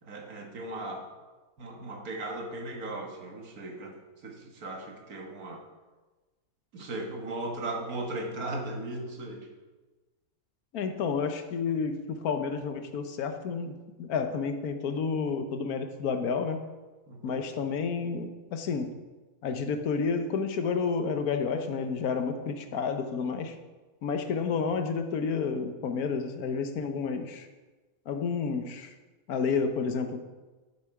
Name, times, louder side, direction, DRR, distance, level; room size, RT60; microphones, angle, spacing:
voice 1, 0.0-1.1 1.6-5.6 6.7-9.5 17.1-17.4 24.2-24.3, right 2 dB, 75° right, 2 dB, 1.9 m, -37 dB
voice 2, 10.7-16.6 17.2-18.9 19.4-23.5 24.0-27.5 28.1-28.9 29.3-30.2, left 5 dB, 80° left, 7 dB, 1.4 m, -30 dB
12.0 x 6.7 x 4.8 m, 1.2 s
omnidirectional pair, 1.6 m